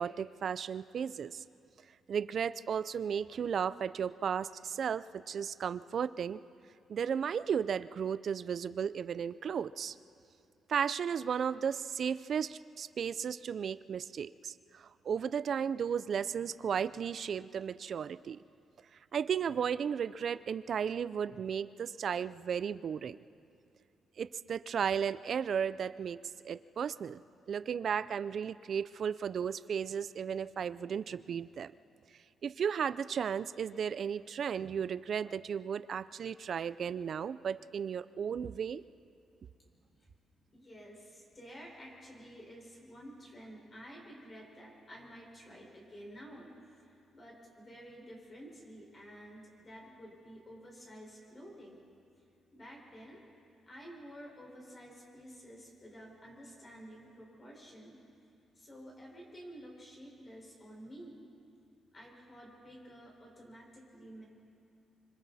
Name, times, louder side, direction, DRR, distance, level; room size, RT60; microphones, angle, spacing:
voice 1, 0.0-1.4 2.1-6.4 6.9-9.9 10.7-18.4 19.1-23.2 24.2-27.2 27.5-31.7 32.4-38.8, right 7 dB, 50° right, 15 dB, 0.5 m, -34 dB
voice 2, 39.7-40.1 40.5-51.9 52.5-53.2 53.7-58.0 58.5-61.2 61.9-64.2, equal, 30° left, -2 dB, 5.0 m, -51 dB
26.0 x 25.0 x 4.2 m, 2.5 s
cardioid pair, 135°, 0 cm